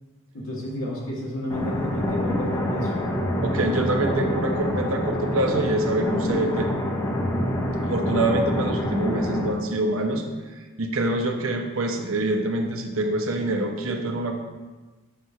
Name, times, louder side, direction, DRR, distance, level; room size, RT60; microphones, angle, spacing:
voice 1, 0.3-2.9, left 1 dB, 90° left, -5 dB, 1.8 m, -31 dB
sound 1, 1.5-9.5, left 1 dB, 15° left, 0.6 m, -26 dB
voice 2, 3.4-6.7 7.8-10.2 10.8-14.4, right 2 dB, 80° right, 3 dB, 0.8 m, -25 dB
6.7 x 5.8 x 2.7 m, 1.3 s
head